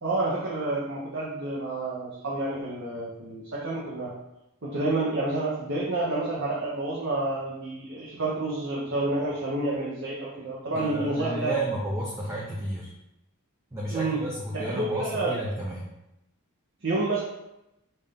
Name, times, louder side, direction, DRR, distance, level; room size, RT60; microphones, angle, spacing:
voice 1, 0.0-4.1 4.6-11.5 13.9-14.2 14.5-15.3 16.8-17.2, right 2 dB, 60° right, -6 dB, 0.9 m, -29 dB
voice 2, 10.7-12.9 13.7-15.9, right 1 dB, 10° right, -4 dB, 0.5 m, -32 dB
5.5 x 2.7 x 3.5 m, 0.89 s
head